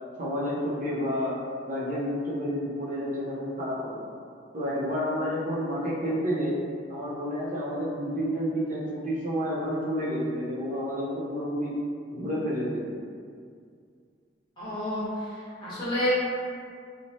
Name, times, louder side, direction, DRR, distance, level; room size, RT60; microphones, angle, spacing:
voice 1, 0.2-1.4 1.6-4.0 4.5-6.6 6.9-11.8 12.1-12.9, equal, 45° right, -6 dB, 0.6 m, -30 dB
voice 2, 14.6-16.1, left 1 dB, 25° left, -12 dB, 1.2 m, -30 dB
3.1 x 2.1 x 2.6 m, 2.2 s
head